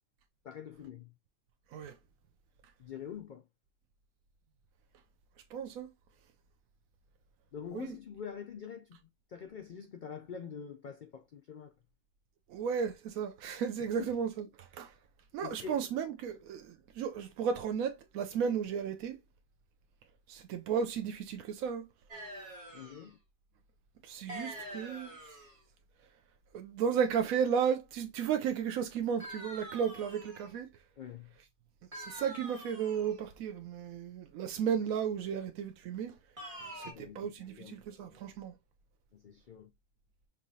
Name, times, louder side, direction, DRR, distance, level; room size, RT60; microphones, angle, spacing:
voice 1, 0.4-1.1 2.8-3.4 7.5-9.0 9.3-11.7 13.8-14.1 15.4-15.8 22.7-23.2 31.0-31.3 36.6-37.8 38.1-38.2 39.1-39.7, left 7 dB, 85° left, 0.4 m, -45 dB
voice 2, 5.5-5.9 7.7-8.0 12.5-14.9 15.3-19.2 20.3-21.9 24.0-25.1 26.5-30.7 31.9-36.2 36.8-38.5, right 7 dB, 85° right, 1.0 m, -34 dB
sound 1, 22.1-23.1 24.3-25.6 29.2-30.5 31.9-33.2 36.4-36.9, right 1 dB, 25° right, 1.7 m, -45 dB
5.5 x 3.0 x 2.6 m
omnidirectional pair, 1.4 m